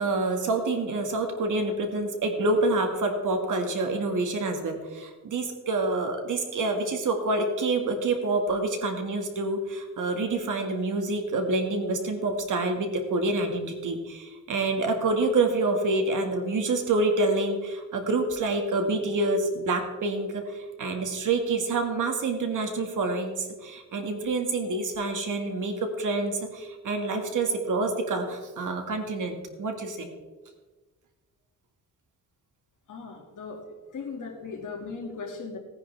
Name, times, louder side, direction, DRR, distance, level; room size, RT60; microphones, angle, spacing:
voice 1, 0.0-30.1, right 2 dB, 60° right, 4 dB, 1.9 m, -27 dB
voice 2, 32.9-35.6, left 4 dB, 60° left, 2 dB, 2.2 m, -38 dB
17.0 x 10.5 x 3.4 m, 1.3 s
cardioid pair, 125°, 34 cm